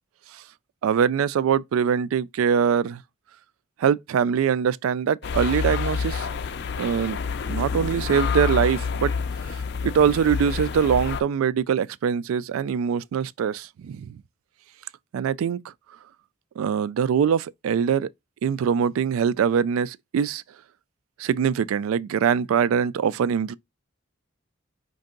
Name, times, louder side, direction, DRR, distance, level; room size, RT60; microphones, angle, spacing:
voice 1, 0.8-3.0 3.8-6.3 6.8-7.2 7.5-9.1 9.8-14.2 15.1-15.6 16.6-18.1 18.4-20.4 21.2-23.5, right 7 dB, 85° right, 0.3 m, -23 dB
sound 1, 5.2-11.2, left 5 dB, 55° left, 0.4 m, -28 dB
5.3 x 2.6 x 3.7 m
head